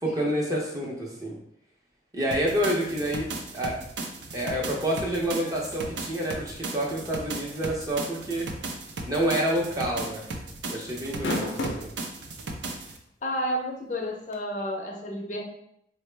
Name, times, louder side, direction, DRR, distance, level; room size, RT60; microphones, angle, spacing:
voice 1, 0.0-1.4 2.1-3.8 4.3-8.5 9.1-10.2 10.7-11.9, right 1 dB, 20° right, -3 dB, 0.6 m, -28 dB
sound 1, 2.3-13.0, right 2 dB, 85° right, 0.5 m, -36 dB
sound 2, 9.3-9.5 9.9-10.0 11.0-11.9 12.7-12.8 14.3-14.4, left 2 dB, 90° left, 0.6 m, -30 dB
voice 2, 13.2-15.4, equal, 45° left, 0 dB, 0.6 m, -31 dB
4.0 x 2.0 x 3.2 m, 0.73 s
head